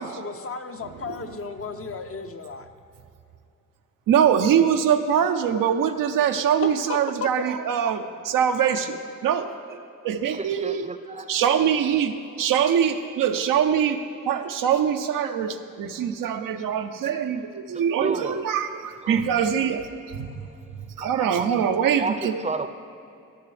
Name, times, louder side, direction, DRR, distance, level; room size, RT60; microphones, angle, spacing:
voice 1, 0.0-2.7 6.6-7.5, left 4 dB, 45° left, 0.7 m, -34 dB
voice 2, 4.1-9.0 9.2-9.8 10.0-10.8 11.3-14.0 14.3-19.9 20.1-20.3 21.0-22.3, right 8 dB, 90° right, 0.6 m, -23 dB
voice 3, 10.3-11.3 18.0-18.4 19.0-19.2 21.0-21.5 21.8-22.7, right 4 dB, 20° right, 0.5 m, -31 dB
16.0 x 6.7 x 3.2 m
cardioid pair, 50°, 32 cm